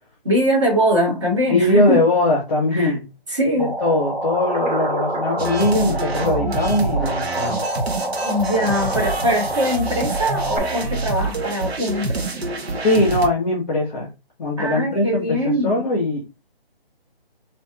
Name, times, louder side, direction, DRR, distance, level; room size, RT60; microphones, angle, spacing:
voice 1, 0.2-2.0 2.7-3.0 3.3-3.8 6.4-6.5 8.2-12.4 14.6-15.8, equal, 30° right, 1.2 m, -22 dB
voice 2, 1.5-3.0 3.6-7.7 12.7-14.1 14.4-16.2, left 2 dB, 10° left, 0.8 m, -20 dB
sound 1, 3.6-10.6, right 1 dB, 50° right, 1.9 m, -27 dB
sound 2, 5.4-13.3, right 3 dB, 75° right, 0.9 m, -27 dB
4.3 x 2.8 x 3.6 m
hypercardioid pair, 170°, 31 cm